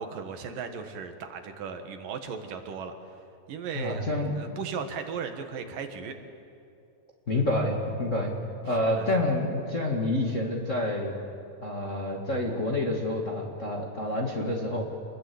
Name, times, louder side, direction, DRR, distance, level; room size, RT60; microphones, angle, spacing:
voice 1, 0.0-2.9 3.5-4.1 4.3-6.1 8.7-9.1, right 6 dB, 70° right, 6 dB, 3.1 m, -36 dB
voice 2, 3.7-4.4 7.3-8.3 8.6-11.2 11.6-14.9, left 1 dB, 25° left, -1 dB, 1.8 m, -28 dB
27.5 x 21.5 x 8.5 m, 2.6 s
omnidirectional pair, 4.1 m